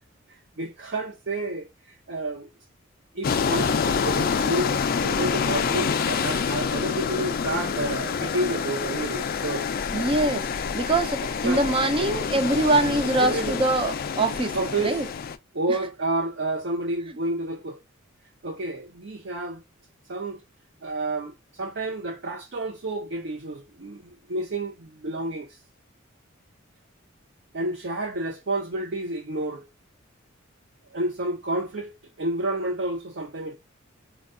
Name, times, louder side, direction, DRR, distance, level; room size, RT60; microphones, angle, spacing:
voice 1, 0.6-2.5 3.1-4.7 5.0-9.7 11.4-11.6 12.0-12.3 13.2-13.6 14.5-15.0 15.5-17.8 18.4-19.6 20.1-20.4 20.8-25.6 27.5-29.7 30.9-31.9 32.2-33.5, right 2 dB, 60° right, 0.7 m, -30 dB
sound 1, 3.2-15.4, left 6 dB, 45° left, 0.4 m, -27 dB
voice 2, 9.9-15.1, right 2 dB, 25° right, 0.5 m, -24 dB
4.4 x 2.3 x 2.4 m
head